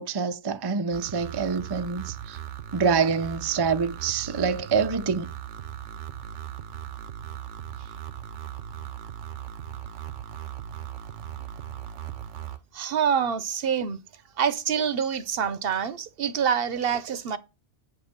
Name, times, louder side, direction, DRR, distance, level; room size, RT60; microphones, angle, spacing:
voice 1, 0.0-2.4 2.7-5.3, right 5 dB, 35° right, 0.4 m, -26 dB
sound 1, 0.9-12.6, right 10 dB, 90° right, 1.1 m, -38 dB
voice 2, 12.7-14.0 14.4-17.4, right 7 dB, 60° right, 0.8 m, -26 dB
8.1 x 4.8 x 6.5 m
omnidirectional pair, 1.2 m